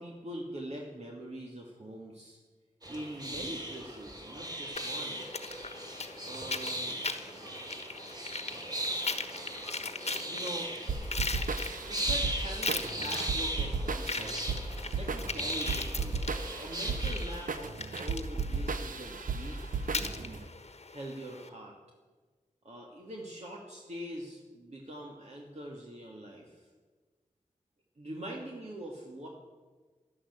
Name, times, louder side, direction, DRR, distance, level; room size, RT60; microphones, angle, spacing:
voice 1, 0.0-2.4 2.9-5.2 6.2-7.0 8.7-9.0 10.2-10.8 11.9-14.4 15.0-19.6 19.9-20.4 20.9-21.7 22.6-26.7 28.0-29.3, right 1 dB, 55° right, -2 dB, 2.3 m, -43 dB
sound 1, 2.8-17.5, right 1 dB, 30° right, 3.3 m, -38 dB
sound 2, 4.7-21.5, left 3 dB, 50° left, 1.3 m, -40 dB
sound 3, 10.9-20.4, right 4 dB, 85° right, 0.8 m, -35 dB
11.5 x 11.0 x 8.1 m, 1.4 s
cardioid pair, 50°, 14 cm